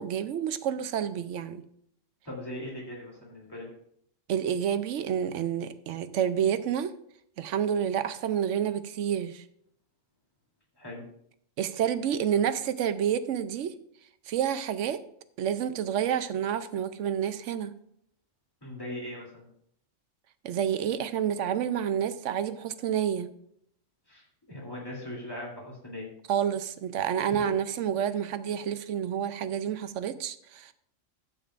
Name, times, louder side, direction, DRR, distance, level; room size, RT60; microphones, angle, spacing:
voice 1, 0.0-1.6 4.3-6.9 7.4-9.4 11.6-13.7 14.3-15.0 15.4-17.7 20.4-23.3 26.3-30.7, right 9 dB, 75° right, 12 dB, 0.9 m, -29 dB
voice 2, 2.2-3.6 10.8-11.0 18.6-19.5 24.1-26.1, left 1 dB, 20° left, -3 dB, 3.0 m, -39 dB
12.5 x 8.6 x 2.5 m, 0.70 s
omnidirectional pair, 1.3 m